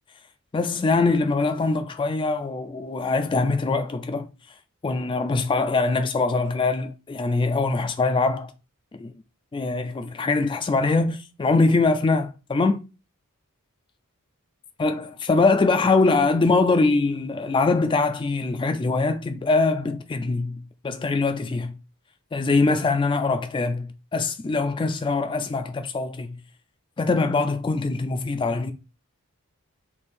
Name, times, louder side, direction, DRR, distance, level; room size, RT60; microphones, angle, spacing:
voice 1, 0.5-4.3 4.8-8.5 8.9-9.1 9.5-12.8 14.8-21.7 22.3-26.4 27.0-28.7, left 3 dB, 20° left, 0.3 m, -23 dB
3.3 x 2.7 x 4.3 m
head